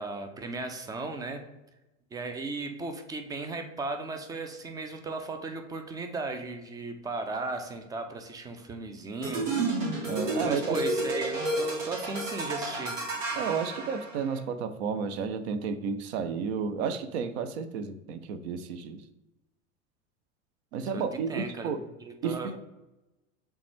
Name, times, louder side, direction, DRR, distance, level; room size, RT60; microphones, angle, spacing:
voice 1, 0.0-1.4 2.1-9.5 10.4-13.0 20.9-21.7 22.0-22.6, right 3 dB, 10° right, 7 dB, 0.3 m, -36 dB
sound 1, 9.2-14.4, right 2 dB, 75° right, 1.2 m, -31 dB
voice 2, 10.1-10.8 13.4-19.0 20.7-21.8 22.2-22.6, right 6 dB, 60° right, 11 dB, 0.6 m, -32 dB
6.7 x 2.3 x 3.1 m, 0.99 s
hypercardioid pair, 85°, 38 cm